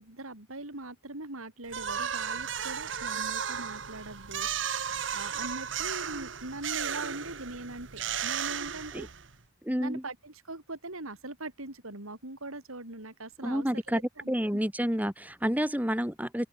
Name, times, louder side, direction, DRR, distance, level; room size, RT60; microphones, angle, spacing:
voice 1, 0.0-9.1 9.8-14.6, right 2 dB, 85° right, 4.6 m, -41 dB
sound 1, 1.7-9.4, right 8 dB, 60° right, 1.1 m, -34 dB
voice 2, 9.7-10.0 13.4-14.0 14.3-16.5, equal, 5° right, 2.0 m, -29 dB
open air
head